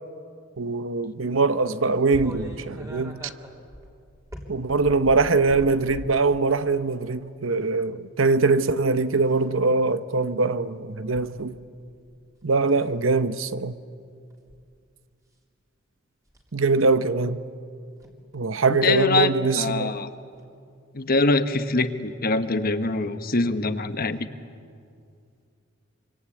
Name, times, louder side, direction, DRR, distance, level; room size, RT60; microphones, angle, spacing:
voice 1, 0.6-3.2 4.5-11.6 12.4-13.7 16.5-17.4 18.3-19.9, right 3 dB, 80° right, 0.9 m, -22 dB
sound 1, 2.1-6.2 7.0-7.2 9.0-9.4 11.1-11.3 11.8-12.2 12.6-12.9 14.3-14.6 16.3-16.5 18.0-18.1 19.6-19.7 20.4-20.5, equal, 15° right, 3.2 m, -40 dB
voice 2, 18.7-20.1 20.9-24.3, left 3 dB, 50° left, 1.2 m, -24 dB
25.5 x 25.0 x 8.5 m
head